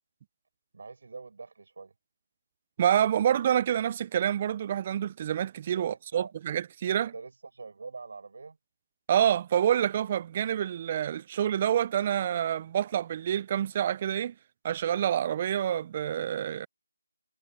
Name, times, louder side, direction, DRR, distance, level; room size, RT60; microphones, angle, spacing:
voice 1, 0.7-1.9 5.8-6.3 6.9-8.6, right 4 dB, 55° right, 7.4 m, -44 dB
voice 2, 2.8-7.1 9.1-14.3 14.6-16.7, right 10 dB, 25° right, 0.5 m, -27 dB
figure-of-eight pair, 165°, 0 cm